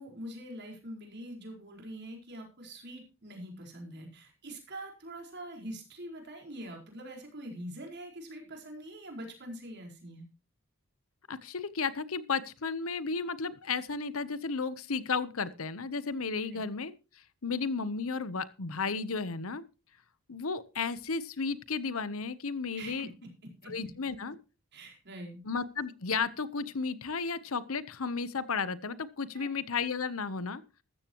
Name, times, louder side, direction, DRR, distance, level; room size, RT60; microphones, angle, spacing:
voice 1, 0.0-10.2 16.5-16.6 22.7-23.1 23.6-23.7 24.7-25.4 29.3-29.5, right 1 dB, 55° right, 2 dB, 4.6 m, -44 dB
voice 2, 11.3-16.9 17.4-19.6 20.3-23.1 23.7-24.4 25.4-30.6, left 5 dB, 80° left, 16 dB, 0.9 m, -33 dB
14.5 x 14.0 x 3.0 m, 0.31 s
head